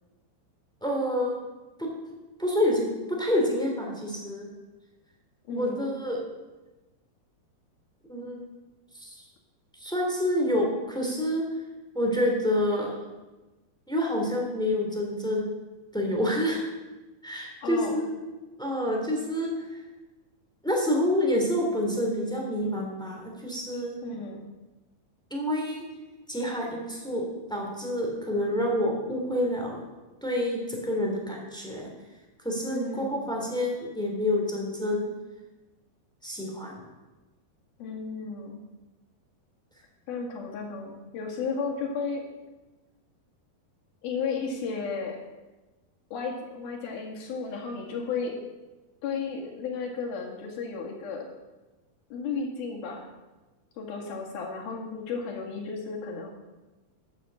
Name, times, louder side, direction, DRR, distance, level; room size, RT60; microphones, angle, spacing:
voice 1, 0.8-1.3 1.8-1.9 2.4-4.5 5.5-6.2 8.1-8.4 9.0-9.1 9.8-11.4 11.9-12.9 13.9-15.5 15.9-16.6 17.2-18.2 18.6-19.5 20.6-24.0 25.3-25.8 26.3-29.8 30.2-31.9 32.4-35.1 36.2-36.9, left 1 dB, ahead, -1 dB, 1.8 m, -28 dB
voice 2, 5.5-5.9 17.6-18.1 24.0-24.5 32.7-33.2 37.8-38.6 40.1-42.3 44.0-45.2 46.1-48.4 49.0-51.4 52.1-53.1 53.8-56.3, left 5 dB, 65° left, 0 dB, 3.8 m, -33 dB
13.5 x 8.1 x 7.5 m, 1.2 s
omnidirectional pair, 4.8 m